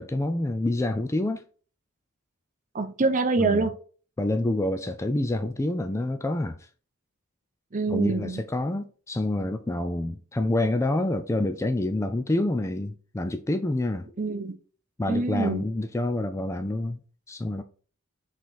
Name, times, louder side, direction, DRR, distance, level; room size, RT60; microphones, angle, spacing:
voice 1, 0.0-1.4 3.4-3.7 4.2-6.7 7.9-14.1 15.0-17.0 17.3-17.6, left 1 dB, 15° left, 0.4 m, -27 dB
voice 2, 2.7-3.7 7.7-8.4 14.2-14.5 15.1-15.6, right 3 dB, 35° right, 0.8 m, -25 dB
5.9 x 4.0 x 4.7 m
head